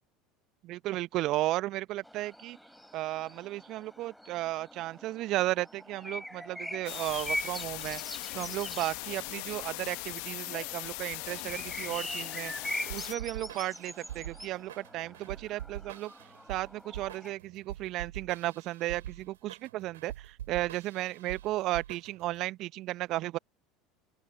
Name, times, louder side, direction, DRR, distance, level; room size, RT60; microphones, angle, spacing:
voice 1, 0.6-2.6 2.9-8.0 8.3-12.5 12.8-16.1 16.5-23.4, right 16 dB, 50° right, 1.1 m, -34 dB
sound 1, 2.0-17.3, equal, ahead, 4.8 m, -43 dB
sound 2, 6.9-13.2, left 36 dB, 60° left, 1.3 m, -39 dB
sound 3, 12.9-22.4, right 12 dB, 70° right, 3.9 m, -44 dB
open air
figure-of-eight pair, 70°, 0 cm